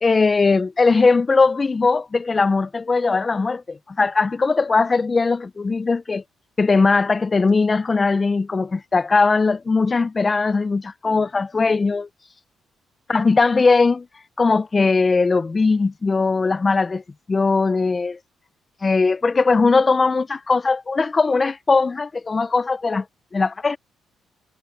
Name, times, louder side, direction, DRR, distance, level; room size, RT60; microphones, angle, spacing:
voice 1, 0.0-6.2 6.6-12.1 13.1-14.1 14.4-17.0 17.3-18.2 18.8-23.0 23.3-23.8, left 4 dB, 30° left, 0.7 m, -19 dB
cardioid pair, 75°, 0 cm